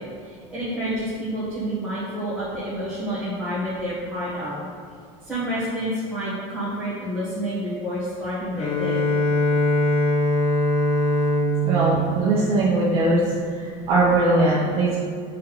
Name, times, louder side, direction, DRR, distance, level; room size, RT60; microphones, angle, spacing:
voice 1, 0.0-4.6 5.2-9.1, equal, ahead, -14 dB, 1.5 m, -29 dB
Bowed string instrument, 8.6-13.3, left 1 dB, 40° left, 1.0 m, -22 dB
voice 2, 11.6-13.2 13.5-15.0, right 2 dB, 40° right, -8 dB, 1.2 m, -20 dB
7.4 x 4.3 x 4.2 m, 2.2 s
cardioid pair, 175°, 16 cm